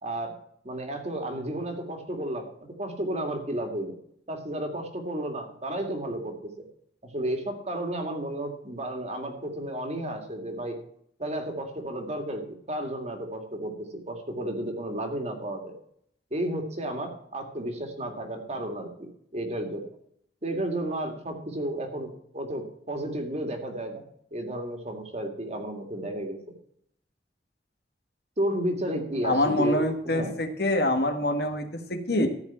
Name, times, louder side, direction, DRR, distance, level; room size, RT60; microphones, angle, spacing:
voice 1, 0.0-0.3 0.6-2.4 2.8-4.0 4.3-6.5 7.1-10.8 11.2-15.7 16.3-19.8 20.4-24.0 24.3-26.4 28.4-30.3, right 1 dB, 40° right, 4 dB, 2.1 m, -32 dB
voice 2, 29.2-32.3, left 1 dB, 65° left, 6 dB, 1.6 m, -25 dB
14.0 x 4.8 x 8.7 m, 0.70 s
head